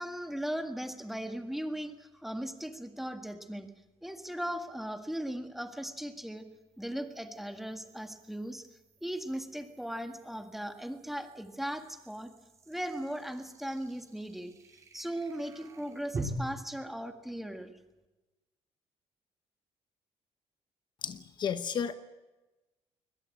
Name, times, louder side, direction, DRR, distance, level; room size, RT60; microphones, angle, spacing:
voice 1, 0.0-3.7 4.0-6.4 6.8-8.7 9.0-12.3 12.7-14.5 14.9-17.7, equal, ahead, 6 dB, 1.7 m, -38 dB
sound 1, 2.6-2.7 6.1-16.2, right 4 dB, 30° right, 5.0 m, -49 dB
voice 2, 21.0-21.9, left 7 dB, 45° left, 10 dB, 1.0 m, -33 dB
21.5 x 21.5 x 8.5 m, 1.1 s
cardioid pair, 160°, 11 cm